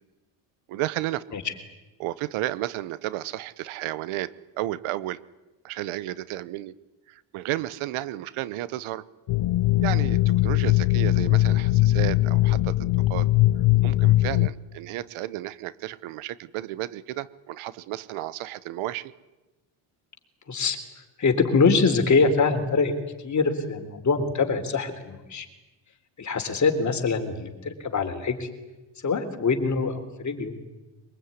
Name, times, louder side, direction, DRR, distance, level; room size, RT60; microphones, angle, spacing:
voice 1, 0.7-1.2 2.0-5.2 5.6-6.7 7.1-9.1 9.8-13.3 13.8-19.1, right 15 dB, 85° right, 18 dB, 1.1 m, -32 dB
sound 1, 9.3-14.5, left 17 dB, 65° left, 0.9 m, -21 dB
voice 2, 20.5-22.9 23.2-25.5 26.2-28.5 29.0-30.6, left 4 dB, 35° left, 6 dB, 3.7 m, -24 dB
23.0 x 22.0 x 9.8 m, 1.1 s
cardioid pair, 115°, 47 cm